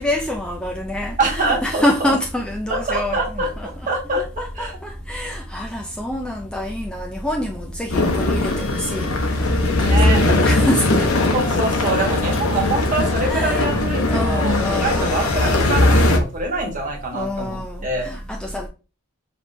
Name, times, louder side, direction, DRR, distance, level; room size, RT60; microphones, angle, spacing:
voice 1, 0.0-3.9 4.2-11.3 13.3-13.7 14.1-15.2 17.1-18.7, left 1 dB, 5° left, 0.4 m, -26 dB
voice 2, 1.2-2.1 2.7-4.2 4.6-4.7 9.8-10.2 11.3-18.1, right 2 dB, 40° right, 1.2 m, -25 dB
sound 1, 7.9-16.2, left 2 dB, 85° left, 0.9 m, -19 dB
5.3 x 3.2 x 2.6 m
head